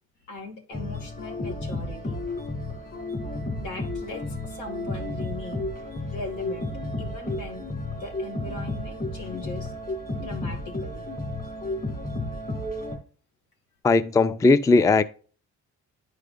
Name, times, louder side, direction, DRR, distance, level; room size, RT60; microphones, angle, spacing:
voice 1, 0.3-2.2 3.6-5.7 6.1-6.7 7.0-7.6 7.9-9.7 10.2-11.0, left 3 dB, 90° left, 2.4 m, -39 dB
sound 1, 0.7-13.0, left 1 dB, 30° left, 2.4 m, -32 dB
voice 2, 13.8-15.0, left 3 dB, 10° left, 0.3 m, -18 dB
10.5 x 4.8 x 2.5 m
cardioid pair, 90°, 30 cm